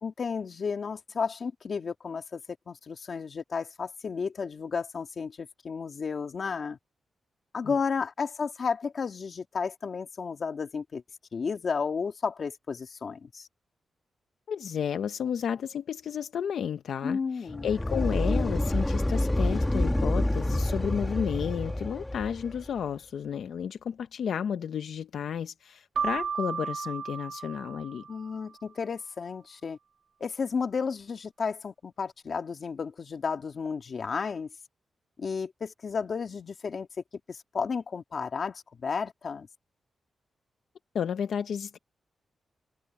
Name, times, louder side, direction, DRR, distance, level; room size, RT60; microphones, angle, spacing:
voice 1, 0.0-2.4 2.7-6.8 7.5-11.0 11.3-13.5 17.0-17.7 28.1-29.8 30.2-34.5 35.2-36.9 37.3-39.5, left 5 dB, 45° left, 2.0 m, -32 dB
voice 2, 14.5-28.1 40.9-41.8, left 8 dB, 75° left, 0.7 m, -32 dB
sound 1, 17.5-22.7, left 1 dB, 10° left, 1.4 m, -28 dB
Keyboard (musical), 26.0-28.5, right 6 dB, 65° right, 1.4 m, -34 dB
wide cardioid pair, 150°, 0 cm